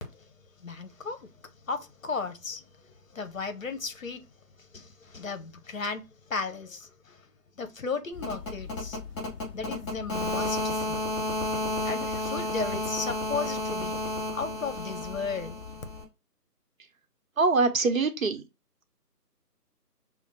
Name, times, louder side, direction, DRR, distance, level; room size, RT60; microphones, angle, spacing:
voice 1, 0.6-1.3 1.7-2.6 3.1-4.2 4.7-7.2 7.6-9.0 9.5-11.0 11.8-14.0 14.3-15.6, left 4 dB, 55° left, 0.9 m, -35 dB
sound 1, 8.1-16.0, left 1 dB, 20° left, 3.0 m, -32 dB
voice 2, 17.4-18.4, right 3 dB, 55° right, 0.9 m, -23 dB
5.9 x 2.1 x 4.0 m
figure-of-eight pair, 155°, 48 cm